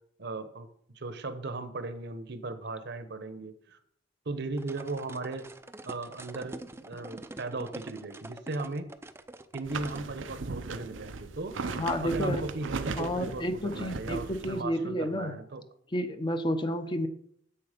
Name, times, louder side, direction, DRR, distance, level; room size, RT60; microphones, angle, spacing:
voice 1, 0.2-0.7 0.9-3.8 4.3-5.4 5.8-8.9 9.5-11.6 12.0-15.6, right 3 dB, 60° right, 10 dB, 1.0 m, -37 dB
sound 1, 4.6-10.1, right 2 dB, 15° right, 0.5 m, -45 dB
sound 2, 9.6-14.6, right 4 dB, 85° right, 0.7 m, -37 dB
voice 2, 11.8-12.5 13.0-15.4 15.9-17.1, equal, 25° left, 9 dB, 0.8 m, -30 dB
10.0 x 8.0 x 5.1 m, 0.70 s
head